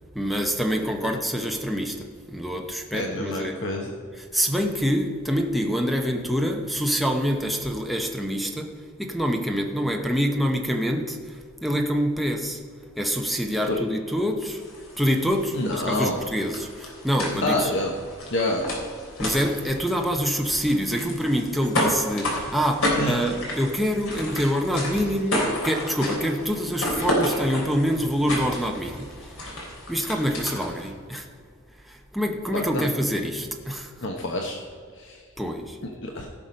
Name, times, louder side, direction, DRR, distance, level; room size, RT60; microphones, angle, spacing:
voice 1, 0.1-3.6 4.2-12.6 13.0-14.6 15.0-17.7 19.2-29.4 29.9-31.3 31.8-33.9 35.4-35.8, equal, ahead, 2 dB, 0.8 m, -26 dB
voice 2, 2.9-3.9 13.7-13.8 15.5-16.2 17.4-17.9 18.3-18.7 23.0-23.1 32.5-32.9 34.0-34.6 35.0-35.2 35.8-36.3, left 1 dB, 60° left, 1 dB, 1.1 m, -27 dB
sound 1, 14.4-30.9, left 1 dB, 80° left, 3.3 m, -31 dB
17.0 x 5.9 x 5.3 m, 2.1 s
head